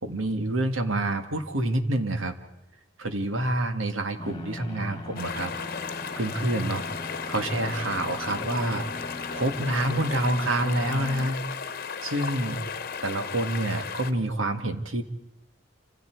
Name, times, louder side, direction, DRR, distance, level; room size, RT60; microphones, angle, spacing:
voice 1, 0.0-2.3 3.0-5.5 6.2-6.8 7.3-11.4 12.0-12.6 13.0-15.0, right 1 dB, 90° right, 7 dB, 1.8 m, -27 dB
sound 1, 4.2-11.3, left 2 dB, 20° left, 1.7 m, -40 dB
sound 2, 5.2-14.1, left 6 dB, 50° left, 1.1 m, -35 dB
28.5 x 26.5 x 4.7 m, 0.86 s
head